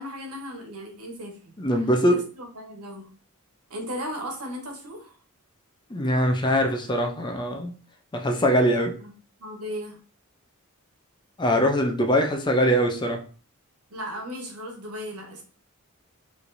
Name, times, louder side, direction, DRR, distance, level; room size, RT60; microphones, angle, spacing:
voice 1, 0.0-1.5 2.0-3.1 3.7-5.1 9.0-9.1 9.4-10.0 13.9-15.4, equal, 85° right, 1.3 m, -36 dB
voice 2, 1.6-2.2 5.9-7.7 8.1-8.9 11.4-13.2, equal, 20° left, 0.5 m, -22 dB
4.9 x 3.3 x 2.6 m
head